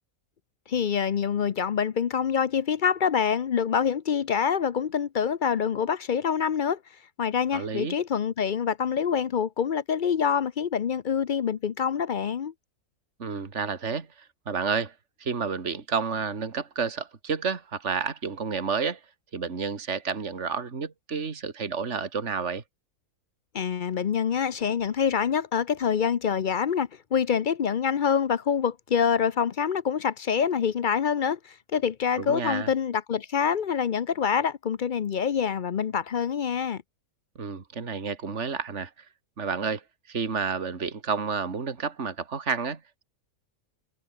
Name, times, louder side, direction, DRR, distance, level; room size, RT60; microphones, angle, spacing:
voice 1, 0.7-6.8 7.2-12.5 23.5-36.8, left 7 dB, 55° left, 0.5 m, -26 dB
voice 2, 7.5-8.0 13.2-14.1 14.5-14.9 15.2-19.0 19.3-22.6 32.2-32.7 37.4-38.9 39.4-39.8 40.1-42.8, right 5 dB, 50° right, 2.4 m, -30 dB
omnidirectional pair, 1.6 m